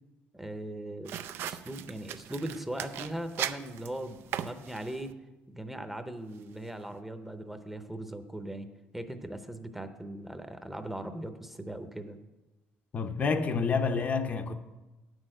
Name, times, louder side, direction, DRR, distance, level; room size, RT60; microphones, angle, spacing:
voice 1, 0.3-1.2 1.4-5.1 5.5-8.7 8.9-12.2, right 1 dB, 5° right, 0.8 m, -39 dB
sound 1, 1.0-5.1, right 10 dB, 70° right, 0.5 m, -39 dB
voice 2, 12.9-14.5, left 5 dB, 35° left, 0.7 m, -28 dB
9.3 x 6.4 x 7.8 m
cardioid pair, 120°, 4 cm